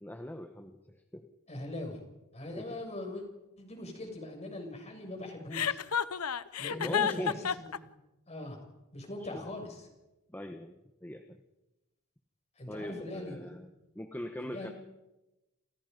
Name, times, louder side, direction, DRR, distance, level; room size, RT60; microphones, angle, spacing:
voice 1, 0.0-1.3 2.6-2.7 6.7-7.5 9.2-9.5 10.3-11.4 12.7-13.7 13.9-14.7, equal, 10° left, 6 dB, 1.2 m, -41 dB
voice 2, 1.5-2.0 2.3-3.2 3.6-5.8 6.6-7.4 7.7-7.9 8.3-8.6 8.9-9.9 12.6-13.5 14.4-14.7, left 1 dB, 30° left, 3 dB, 6.7 m, -41 dB
Chuckle chortle, 5.5-7.8, left 7 dB, 80° left, 0.9 m, -30 dB
28.5 x 28.5 x 5.3 m, 1.0 s
head